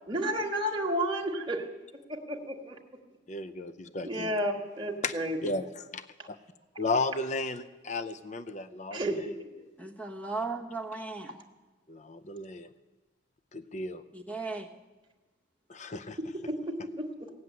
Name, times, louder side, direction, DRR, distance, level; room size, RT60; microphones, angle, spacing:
voice 1, 0.1-1.6 2.1-2.8 4.0-5.4 6.2-6.3 8.9-9.5 16.2-17.3, right 1 dB, 25° right, 0 dB, 1.5 m, -32 dB
voice 2, 3.3-4.3 5.0-5.1 5.4-5.7 5.9-6.0 6.3-6.4 6.8-9.3 11.9-12.7 13.5-14.0 15.7-16.2, left 3 dB, 35° left, 13 dB, 0.5 m, -34 dB
voice 3, 9.8-11.4 14.1-14.7, right 3 dB, 5° left, 3 dB, 1.1 m, -36 dB
16.5 x 7.6 x 9.4 m, 1.2 s
head